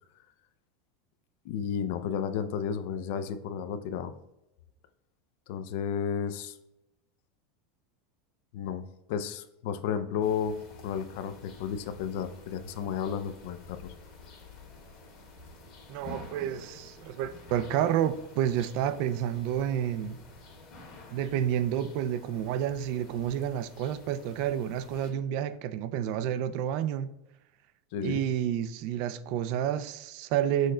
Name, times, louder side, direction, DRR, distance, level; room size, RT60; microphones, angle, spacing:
voice 1, 1.4-4.1 5.5-6.6 8.5-10.5 10.8-13.9 27.9-28.2, left 7 dB, 65° left, 0.4 m, -32 dB
sound 1, 10.2-25.1, left 3 dB, 40° left, 1.5 m, -50 dB
voice 2, 15.9-20.2 21.1-27.1 28.0-30.7, right 10 dB, 55° right, 0.3 m, -30 dB
6.2 x 2.2 x 3.7 m
supercardioid pair, 150°, 0 cm